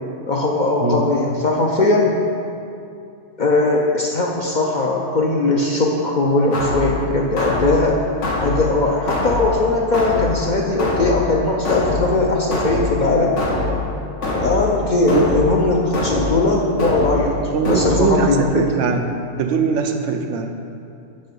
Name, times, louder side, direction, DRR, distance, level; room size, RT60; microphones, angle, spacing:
voice 1, 0.3-2.2 3.4-8.0 8.4-13.3 14.4-17.3 17.6-18.7, left 2 dB, 50° left, -1 dB, 0.6 m, -19 dB
sound 1, 6.5-18.5, left 2 dB, 80° left, 1.4 m, -24 dB
voice 2, 17.5-19.1 19.4-20.5, right 5 dB, 85° right, 5 dB, 1.0 m, -21 dB
9.5 x 3.3 x 5.3 m, 2.5 s
omnidirectional pair, 1.2 m